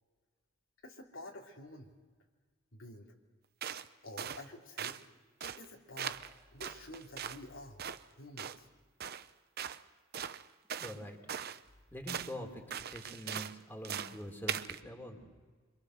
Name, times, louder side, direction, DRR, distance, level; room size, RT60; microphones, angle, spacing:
voice 1, 0.8-1.9 2.7-3.1 4.0-5.0 5.4-6.2 6.5-7.8 8.2-8.7, left 1 dB, 80° left, -1 dB, 3.2 m, -49 dB
sound 1, 3.6-3.9 4.2-4.4 4.8-5.0 5.4-5.6 6.0-6.3 6.6-7.4 7.8-8.0 8.4-8.6 9.0-9.3 9.6-9.8 10.1-11.0 11.3-11.6 12.1-12.3 12.7-13.5 13.8-14.2 14.5-14.8, right 8 dB, 50° right, 0.7 m, -40 dB
voice 2, 10.8-11.2 11.9-12.6 12.9-15.3, equal, 10° left, 1 dB, 3.2 m, -44 dB
26.5 x 24.5 x 6.5 m, 1.4 s
head